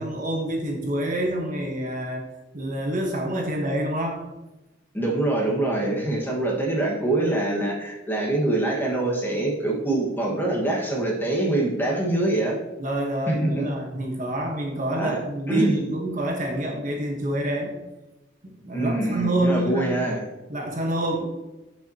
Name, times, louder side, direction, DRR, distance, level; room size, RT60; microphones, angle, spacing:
voice 1, 0.0-2.3 2.5-4.2 5.9-6.1 12.8-17.7 18.4-19.9 20.5-21.2, right 1 dB, 40° right, 0 dB, 1.2 m, -27 dB
voice 2, 4.9-12.6 13.3-13.7 14.9-15.2 15.5-15.8 18.7-20.2, right 2 dB, 10° left, -2 dB, 1.5 m, -24 dB
7.7 x 7.0 x 2.9 m, 1.0 s
head